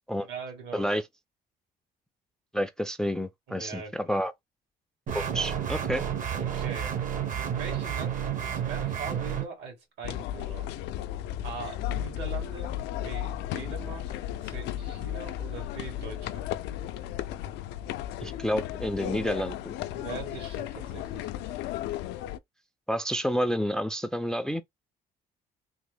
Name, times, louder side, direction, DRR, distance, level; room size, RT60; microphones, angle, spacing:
voice 1, 0.2-0.8 3.5-4.1 6.3-7.0 7.4-10.7 11.4-14.1 14.4-16.5 19.9-21.3, right 5 dB, 80° right, 2.1 m, -41 dB
voice 2, 0.7-1.0 2.5-4.3 5.1-6.0 18.2-19.8 22.9-24.6, equal, 5° left, 0.3 m, -29 dB
sound 1, 5.1-9.5, right 8 dB, 50° right, 0.8 m, -31 dB
sound 2, 10.0-22.4, left 12 dB, 90° left, 0.4 m, -34 dB
3.5 x 2.1 x 3.4 m
cardioid pair, 110°, 17 cm